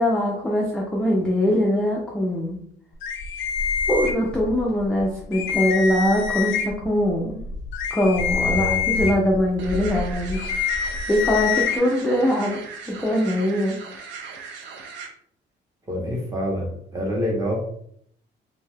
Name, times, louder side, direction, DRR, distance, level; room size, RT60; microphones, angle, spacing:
voice 1, 0.0-2.6 3.9-7.4 7.9-10.5 11.1-12.6 12.9-13.8, left 1 dB, 5° left, -3 dB, 0.3 m, -22 dB
sound 1, 3.0-4.6 5.0-5.1 5.3-6.9 7.4-11.8, left 6 dB, 90° left, 0.5 m, -26 dB
voice 2, 8.4-9.2 15.9-17.6, equal, 20° right, -2 dB, 0.7 m, -27 dB
sound 2, 9.6-15.1, right 5 dB, 75° right, 0.5 m, -38 dB
2.6 x 2.3 x 3.2 m, 0.66 s
cardioid pair, 175°, 19 cm